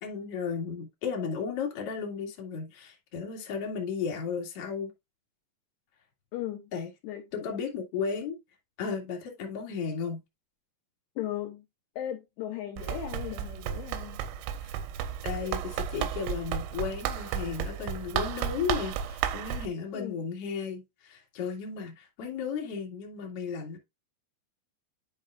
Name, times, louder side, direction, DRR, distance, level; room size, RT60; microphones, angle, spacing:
voice 1, 0.0-4.9 6.7-6.9 7.3-8.4 8.8-10.2 14.6-14.7 15.2-23.8, left 6 dB, 45° left, 2.0 m, -34 dB
voice 2, 6.3-6.7 7.0-7.5 11.2-11.7 12.0-14.3 19.9-20.2, left 12 dB, 80° left, 2.4 m, -37 dB
Run, 12.8-19.7, right 9 dB, 85° right, 3.0 m, -33 dB
11.5 x 5.3 x 2.5 m
omnidirectional pair, 5.7 m